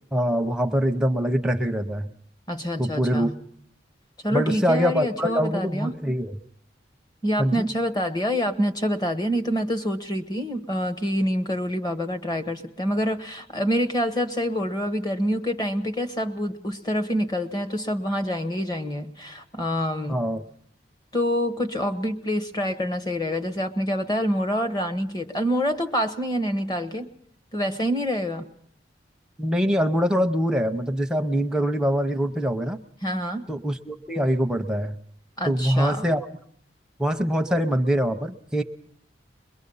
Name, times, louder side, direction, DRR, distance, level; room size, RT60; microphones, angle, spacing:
voice 1, 0.1-2.1 2.8-3.3 4.3-6.4 7.4-7.7 20.1-20.4 29.4-32.8 33.5-35.0 35.4-36.3 37.0-38.6, equal, 5° right, 5 dB, 0.7 m, -24 dB
voice 2, 2.5-3.3 4.2-5.9 7.2-20.3 21.1-27.1 27.5-28.4 33.0-33.4 35.4-36.1, equal, 20° left, 8 dB, 1.2 m, -26 dB
22.5 x 22.0 x 5.6 m, 0.64 s
head